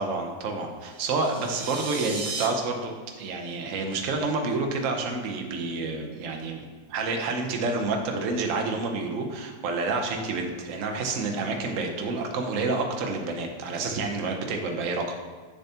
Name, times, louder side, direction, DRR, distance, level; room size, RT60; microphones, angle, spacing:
voice 1, 0.0-15.1, right 3 dB, 55° right, 2 dB, 1.0 m, -29 dB
sound 1, 0.9-2.5, right 4 dB, 85° right, 1.6 m, -35 dB
8.0 x 6.9 x 2.8 m, 1.5 s
omnidirectional pair, 2.1 m